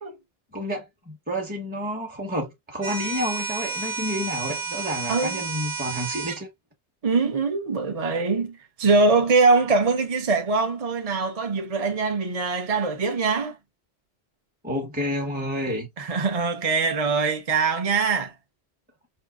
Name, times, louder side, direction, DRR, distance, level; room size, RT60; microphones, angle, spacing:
voice 1, 0.5-6.5 14.6-15.9, equal, 10° right, 1.2 m, -30 dB
sound 1, 2.8-6.4, right 4 dB, 70° right, 1.0 m, -31 dB
voice 2, 5.1-5.5 7.0-13.6 16.0-18.3, right 4 dB, 35° right, 0.9 m, -23 dB
5.6 x 3.0 x 2.4 m
omnidirectional pair, 1.1 m